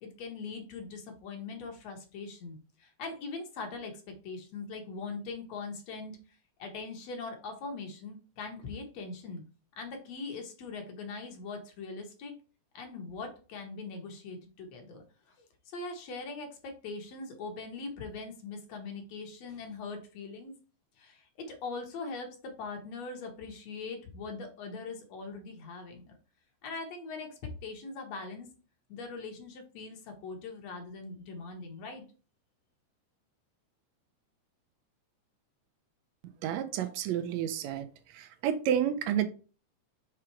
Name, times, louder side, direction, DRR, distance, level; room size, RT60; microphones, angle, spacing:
voice 1, 0.0-6.2 6.6-9.4 9.8-12.3 12.7-15.3 15.7-20.6 21.0-26.2 26.6-28.5 28.9-32.0, left 4 dB, 65° left, 2.2 m, -41 dB
voice 2, 36.4-37.9 38.1-39.3, right 9 dB, 75° right, 1.8 m, -30 dB
5.8 x 3.6 x 4.5 m
omnidirectional pair, 3.3 m